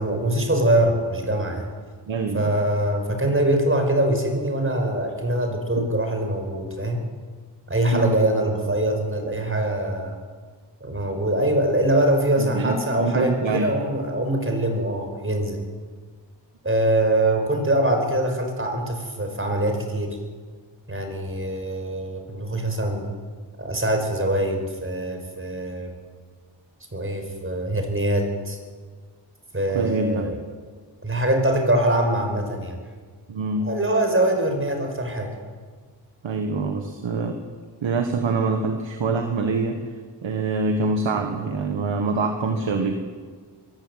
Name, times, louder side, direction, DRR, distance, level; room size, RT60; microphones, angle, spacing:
voice 1, 0.0-1.7 2.3-7.1 7.7-10.1 10.8-15.6 16.6-20.2 20.9-23.1 23.6-25.9 26.9-28.6 29.5-30.4 31.0-32.8 33.7-35.3, right 1 dB, 30° right, 4 dB, 5.3 m, -23 dB
voice 2, 2.1-2.5 5.8-5.9 7.9-8.2 12.4-13.8 29.7-30.3 33.3-33.7 36.2-37.4 37.8-39.9 40.2-42.9, right 3 dB, 80° right, 5 dB, 1.7 m, -25 dB
22.5 x 15.5 x 8.2 m, 1.5 s
cardioid pair, 65°, 45 cm